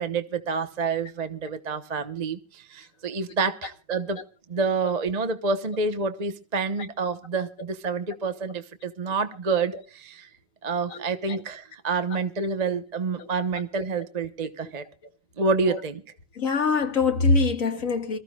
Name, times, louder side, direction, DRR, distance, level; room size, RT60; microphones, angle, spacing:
voice 1, 0.0-4.2 4.5-10.3 10.6-14.8 15.4-16.0, right 4 dB, 30° right, 0.9 m, -28 dB
voice 2, 16.4-18.2, left 4 dB, 50° left, 2.2 m, -23 dB
26.0 x 15.0 x 2.3 m
omnidirectional pair, 1.8 m